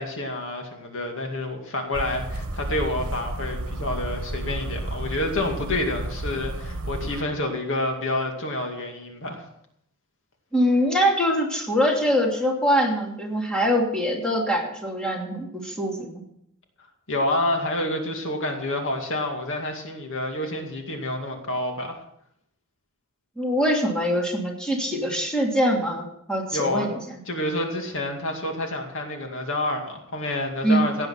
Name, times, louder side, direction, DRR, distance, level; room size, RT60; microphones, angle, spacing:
voice 1, 0.0-9.4 17.1-22.0 26.5-26.9 27.3-31.1, left 1 dB, 60° left, 3 dB, 2.2 m, -28 dB
sound 1, 1.9-7.2, right 1 dB, 70° right, 1.3 m, -32 dB
voice 2, 10.5-16.2 23.4-27.0 30.6-30.9, equal, 5° left, -1 dB, 2.8 m, -23 dB
17.0 x 9.0 x 5.9 m, 0.76 s
head